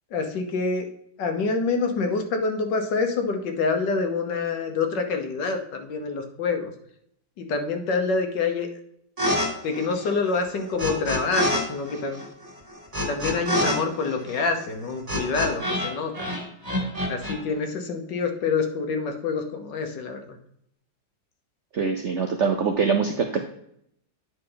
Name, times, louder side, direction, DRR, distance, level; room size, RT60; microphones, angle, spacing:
voice 1, 0.1-0.9 1.2-6.7 7.4-8.7 9.6-12.2 13.1-16.3 17.1-20.2, left 4 dB, 70° left, 5 dB, 1.6 m, -26 dB
sound 1, 9.2-9.5 9.7-11.6 11.9-15.9 16.1-17.3, left 1 dB, 20° right, 2.1 m, -27 dB
voice 2, 21.7-23.4, right 5 dB, 75° right, 5 dB, 0.6 m, -23 dB
9.7 x 5.2 x 3.9 m, 0.71 s
omnidirectional pair, 2.1 m